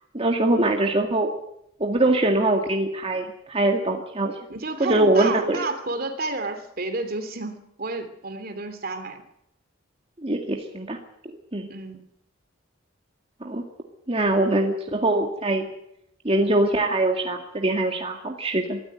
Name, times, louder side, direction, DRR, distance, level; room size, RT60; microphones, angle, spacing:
voice 1, 0.1-1.3 1.8-4.4 4.8-5.6 10.2-11.0 11.5-11.7 13.4-13.6 14.1-15.7 16.2-18.8, right 2 dB, 30° right, 2 dB, 2.0 m, -23 dB
voice 2, 4.5-9.2 11.7-12.0, right 3 dB, 50° right, 9 dB, 2.8 m, -31 dB
23.5 x 14.0 x 9.3 m, 0.79 s
head